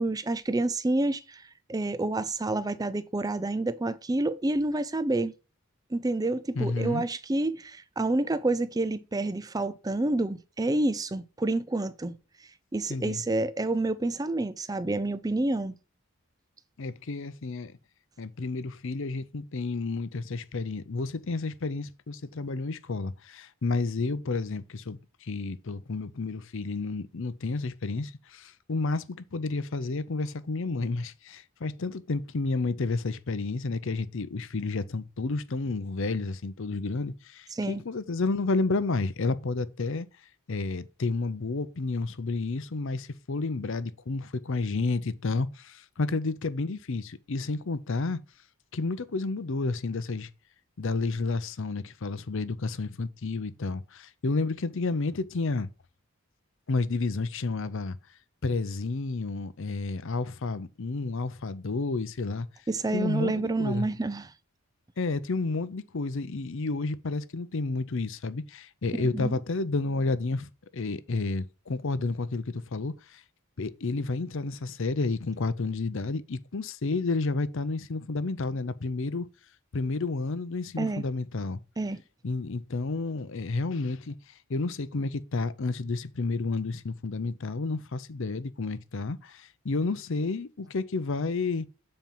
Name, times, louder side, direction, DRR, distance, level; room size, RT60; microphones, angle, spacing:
voice 1, 0.0-1.4 1.7-5.3 5.9-12.2 12.7-15.7 37.5-37.8 62.7-64.3 68.9-69.3 80.8-81.0 81.8-82.0, right 2 dB, 15° right, 0.4 m, -28 dB
voice 2, 6.5-7.1 12.9-13.2 16.8-17.8 18.2-40.1 40.5-48.2 48.7-50.3 50.8-55.7 56.7-58.0 58.4-62.5 62.9-63.9 65.0-73.2 73.6-79.3 79.7-81.6 82.2-91.7, left 3 dB, 60° left, 0.6 m, -31 dB
7.4 x 4.4 x 5.4 m
head